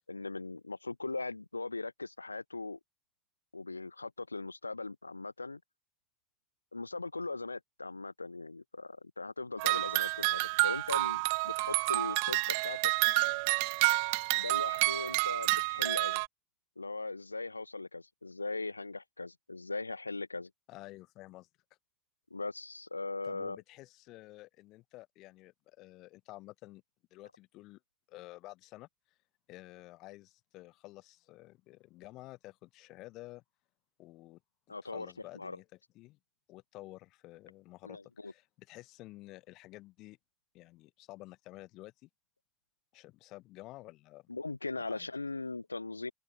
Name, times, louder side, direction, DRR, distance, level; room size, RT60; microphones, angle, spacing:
voice 1, 0.1-2.8 3.5-5.6 6.7-12.9 14.3-16.2 16.8-20.5 22.3-23.6 34.7-35.6 37.8-38.3 44.3-46.1, left 3 dB, 90° left, 3.3 m, -39 dB
sound 1, 9.6-16.3, right 33 dB, 65° right, 1.8 m, -29 dB
voice 2, 20.7-21.5 23.2-26.8 27.1-27.8 28.1-28.9 29.5-33.4 34.0-34.4 34.8-35.6 35.9-36.2 36.5-40.2 40.5-42.1 42.9-44.3 44.8-45.1, left 19 dB, 55° left, 7.9 m, -51 dB
open air
figure-of-eight pair, 65°, 0 cm